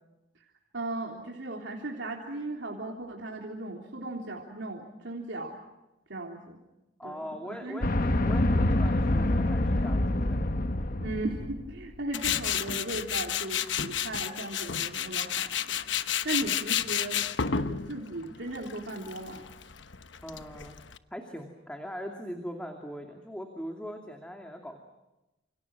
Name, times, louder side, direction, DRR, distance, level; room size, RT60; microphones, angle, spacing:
voice 1, 0.7-5.6 6.1-6.6 7.0-7.8 11.0-17.2 17.6-19.5, right 2 dB, 80° right, 0 dB, 3.5 m, -37 dB
voice 2, 7.0-10.4 20.2-20.7 21.1-24.8, equal, 5° left, 3 dB, 2.6 m, -41 dB
sound 1, 7.8-11.7, left 1 dB, 50° left, 1.2 m, -26 dB
Tools, 12.1-21.0, left 8 dB, 75° left, 1.1 m, -31 dB
29.0 x 28.0 x 6.1 m, 1.0 s
head